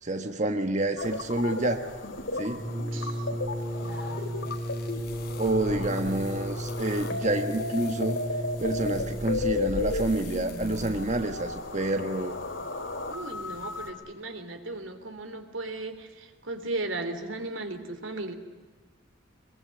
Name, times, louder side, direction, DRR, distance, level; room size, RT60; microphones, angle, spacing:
voice 1, 0.0-1.8 2.3-2.6 3.3-3.4 5.4-8.2 8.6-12.3, right 2 dB, 40° right, 6 dB, 1.4 m, -28 dB
sound 1, 1.0-13.9, left 3 dB, 85° left, 2.9 m, -35 dB
Brass instrument, 2.5-9.7, equal, 10° left, 4.0 m, -34 dB
voice 2, 2.9-3.3 3.8-4.6 13.1-18.3, right 2 dB, 90° right, 8 dB, 3.1 m, -36 dB
sound 2, 3.6-11.5, left 1 dB, 55° left, 4.1 m, -43 dB
24.0 x 22.0 x 9.5 m, 1.3 s
head